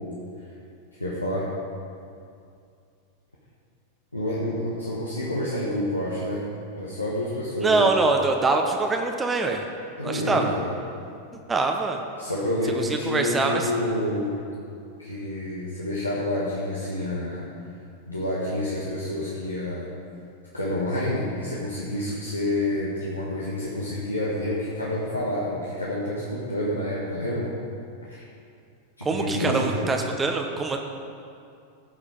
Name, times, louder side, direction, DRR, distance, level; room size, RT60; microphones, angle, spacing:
voice 1, 1.0-1.5 4.1-6.5 6.7-8.0 10.0-10.7 12.2-14.4 15.0-17.5 18.1-19.9 20.5-27.5 28.0-28.2 29.0-29.9, left 1 dB, 85° left, -6 dB, 1.6 m, -28 dB
voice 2, 7.6-9.6 10.0-10.5 11.5-12.0 13.0-13.7 29.0-30.8, right 3 dB, 15° right, 3 dB, 1.0 m, -23 dB
16.0 x 6.7 x 5.2 m, 2.4 s
figure-of-eight pair, 90°, 0 cm